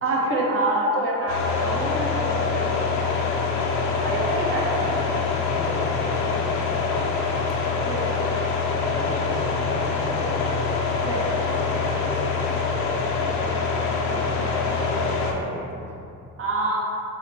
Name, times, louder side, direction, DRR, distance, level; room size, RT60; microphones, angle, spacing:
voice 1, 0.0-3.2 4.0-4.9 7.9-8.1 11.0-11.3 13.1-13.4 16.4-16.8, right 1 dB, 45° right, -3 dB, 0.8 m, -26 dB
sound 1, 1.3-15.3, left 4 dB, 70° left, 0.6 m, -25 dB
voice 2, 3.7-4.0 4.5-7.9 8.7-10.9 11.4-13.1 13.9-16.1, equal, 10° left, -5 dB, 0.5 m, -37 dB
3.9 x 2.1 x 4.4 m, 2.7 s
cardioid pair, 90°, 30 cm